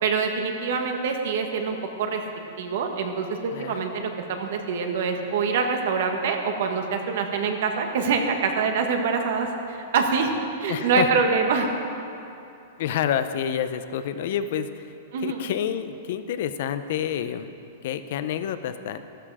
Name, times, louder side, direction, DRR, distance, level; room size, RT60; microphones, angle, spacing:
voice 1, 0.0-2.2 2.6-10.3 10.6-11.7 15.1-15.4, right 5 dB, 60° right, 4 dB, 1.5 m, -25 dB
voice 2, 10.7-11.1 12.8-14.9 15.2-17.5 17.8-19.0, left 9 dB, 55° left, 11 dB, 0.6 m, -28 dB
13.5 x 12.5 x 4.9 m, 2.7 s
supercardioid pair, 160°, 0 cm